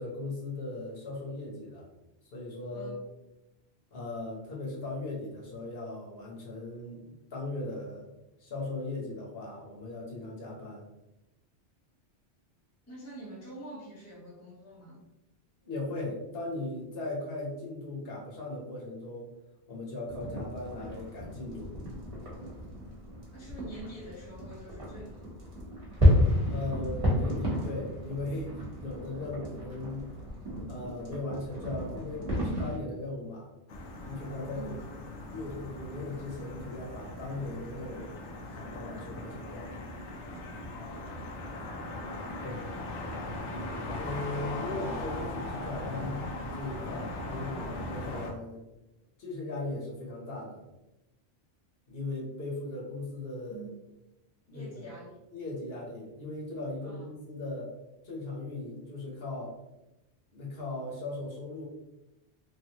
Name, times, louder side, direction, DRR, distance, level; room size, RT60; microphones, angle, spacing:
voice 1, 0.0-1.9 2.3-3.0 3.9-8.1 8.4-10.8 15.6-19.3 19.7-21.7 26.5-30.0 30.7-33.5 34.1-34.8 35.3-38.2 38.6-39.7 42.4-42.6 43.9-48.6 49.2-50.6 51.9-53.7 54.5-54.9 55.3-57.7 58.0-59.5 60.3-61.7, left 2 dB, 60° left, -3 dB, 1.1 m, -38 dB
voice 2, 12.9-15.0 23.3-25.3 34.5-34.7 53.5-53.8 54.5-55.2 56.8-57.1, right 1 dB, 15° left, -4 dB, 0.6 m, -46 dB
sound 1, 20.1-32.8, left 1 dB, 30° right, 1.0 m, -31 dB
sound 2, 33.7-48.3, left 2 dB, 80° left, 0.9 m, -39 dB
3.3 x 2.4 x 2.8 m, 0.94 s
omnidirectional pair, 1.2 m